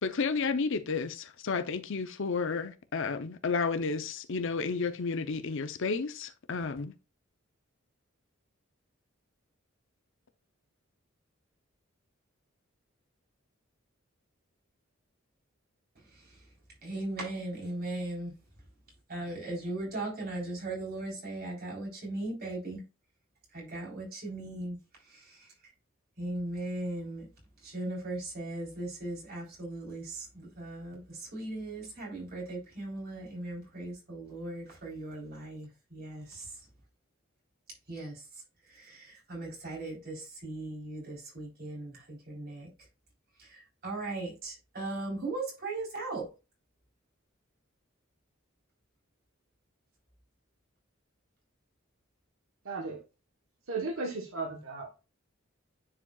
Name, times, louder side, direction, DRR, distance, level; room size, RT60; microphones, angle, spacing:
voice 1, 0.0-6.9, left 4 dB, 65° left, 0.7 m, -32 dB
voice 2, 16.0-16.4 16.8-18.3 19.1-22.8 23.5-24.8 25.0-25.5 26.2-27.3 27.6-36.6 37.9-38.4 38.7-42.7 43.4-46.3, right 2 dB, 50° right, 3.9 m, -38 dB
voice 3, 52.6-53.0 53.7-54.9, right 3 dB, 75° right, 1.2 m, -35 dB
9.9 x 4.9 x 2.4 m
head